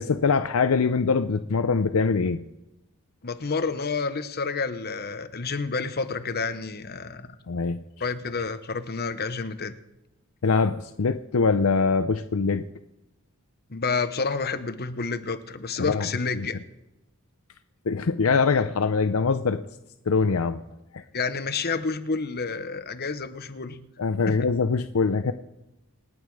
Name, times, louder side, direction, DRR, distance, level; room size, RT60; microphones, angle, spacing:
voice 1, 0.0-2.4 7.5-7.8 10.4-12.6 15.8-16.1 16.3-16.5 17.9-19.6 20.1-20.6 20.9-21.0 24.0-25.3, left 4 dB, 75° left, 11 dB, 0.6 m, -23 dB
voice 2, 3.2-7.4 8.0-9.7 13.7-16.6 21.1-23.8 24.3-24.4, left 4 dB, 50° left, 10 dB, 1.1 m, -29 dB
28.0 x 9.3 x 4.8 m, 0.94 s
head